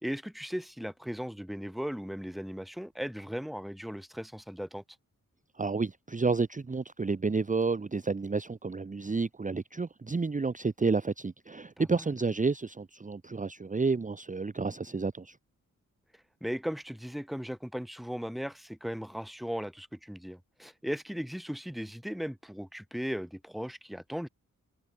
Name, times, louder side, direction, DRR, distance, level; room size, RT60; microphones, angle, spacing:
voice 1, 0.0-4.8 11.8-12.1 16.4-24.3, equal, ahead, 1.4 m, -37 dB
voice 2, 5.6-15.4, right 4 dB, 25° right, 0.8 m, -30 dB
cardioid pair, 55°, 32 cm